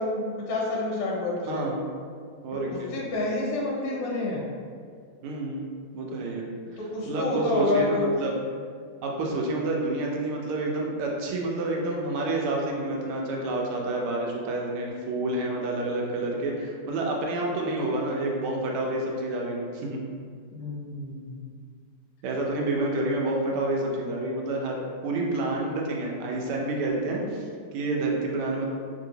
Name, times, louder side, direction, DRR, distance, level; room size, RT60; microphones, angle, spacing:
voice 1, 0.0-1.7 2.5-4.4 6.8-8.1 20.5-21.4, left 2 dB, 75° left, -4 dB, 1.1 m, -28 dB
voice 2, 1.5-1.8 2.4-2.9 5.2-5.7 5.9-6.5 7.1-8.3 9.0-20.0 22.2-28.7, right 2 dB, 85° right, -1 dB, 1.5 m, -29 dB
3.2 x 2.7 x 2.7 m, 2.1 s
omnidirectional pair, 2.3 m